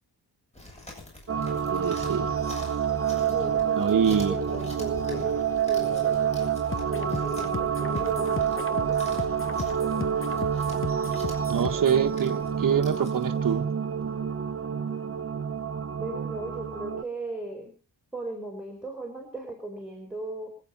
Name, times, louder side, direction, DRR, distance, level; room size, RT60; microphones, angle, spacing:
Chewing mastication, 0.5-13.6, left 1 dB, 15° left, 7.1 m, -47 dB
sound 1, 1.3-17.0, right 7 dB, 35° right, 1.0 m, -28 dB
voice 1, 1.7-2.3 3.7-4.4 11.5-13.7, right 8 dB, 55° right, 5 dB, 1.6 m, -25 dB
voice 2, 3.1-6.2 6.8-8.9 15.9-17.7 18.1-20.5, right 2 dB, ahead, 1 dB, 4.6 m, -37 dB
sound 2, 6.7-12.1, left 5 dB, 30° left, 1.1 m, -37 dB
26.0 x 8.8 x 5.6 m, 0.39 s
wide cardioid pair, 160°, 39 cm